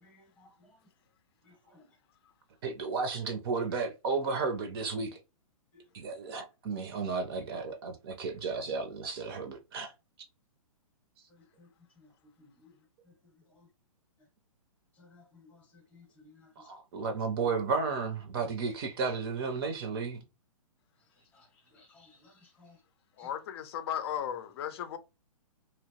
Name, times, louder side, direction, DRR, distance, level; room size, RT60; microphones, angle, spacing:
voice 1, 0.0-0.5 5.7-5.8 15.1-15.4 15.9-16.4 21.3-21.4 21.7-22.7 23.2-23.3, left 3 dB, 10° left, 0.8 m, -59 dB
voice 2, 2.6-5.2 5.9-9.9 16.6-20.2, right 4 dB, 40° right, 0.6 m, -33 dB
voice 3, 23.2-25.0, left 9 dB, 45° left, 0.5 m, -36 dB
2.9 x 2.0 x 2.8 m
hypercardioid pair, 140°, 18 cm